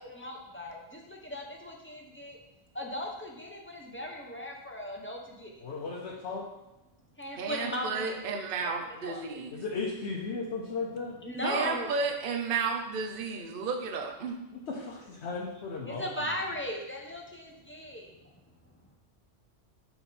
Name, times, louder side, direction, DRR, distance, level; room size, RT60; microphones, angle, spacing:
voice 1, 0.1-2.4 2.7-5.6 7.2-8.7 9.0-9.4 11.2-11.9 15.8-18.2, left 1 dB, 15° left, -1 dB, 0.6 m, -38 dB
voice 2, 5.6-6.4 9.5-11.2 14.7-16.0, left 4 dB, 75° left, -3 dB, 1.1 m, -35 dB
voice 3, 7.4-9.6 11.4-14.4, right 5 dB, 55° right, 3 dB, 0.8 m, -32 dB
6.9 x 3.5 x 4.1 m, 0.96 s
omnidirectional pair, 1.2 m